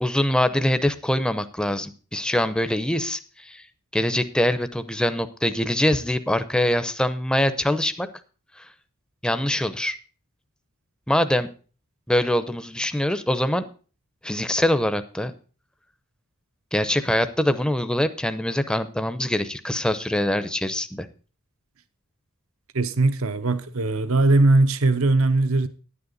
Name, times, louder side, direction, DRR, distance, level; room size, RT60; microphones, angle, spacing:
voice 1, 0.0-3.6 3.9-8.1 8.6-8.7 9.2-10.0 11.1-11.5 12.1-13.6 14.2-15.3 16.7-21.1, left 1 dB, 5° left, 0.6 m, -23 dB
voice 2, 22.7-25.7, right 2 dB, 70° right, 0.8 m, -20 dB
10.5 x 9.8 x 4.0 m
head